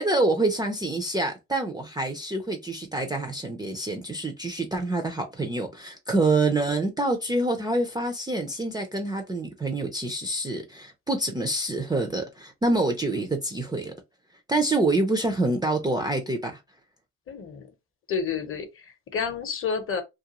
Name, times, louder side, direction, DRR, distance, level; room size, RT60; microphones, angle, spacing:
voice 1, 0.0-13.9 14.5-16.6, right 2 dB, 10° right, 0.4 m, -26 dB
voice 2, 17.3-17.7 18.1-20.0, left 6 dB, 35° left, 0.8 m, -30 dB
2.4 x 2.3 x 2.8 m
supercardioid pair, 75°, 36 cm